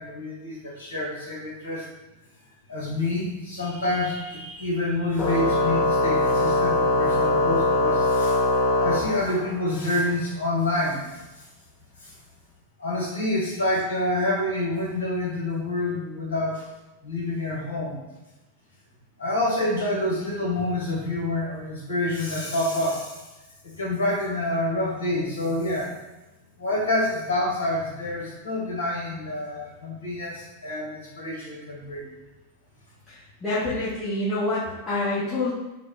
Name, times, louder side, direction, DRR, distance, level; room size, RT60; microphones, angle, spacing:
voice 1, 0.0-1.9 2.7-8.4 8.8-11.0 12.0-12.1 12.8-16.6 17.0-18.0 19.2-23.2 23.6-25.9 26.6-32.1, left 1 dB, 60° left, -4 dB, 1.3 m, -27 dB
Organ, 5.2-9.7, left 2 dB, 30° left, 0.7 m, -22 dB
voice 2, 33.1-35.5, left 2 dB, 15° left, -13 dB, 1.1 m, -27 dB
3.8 x 2.2 x 3.6 m, 1.0 s
figure-of-eight pair, 90°, 0 cm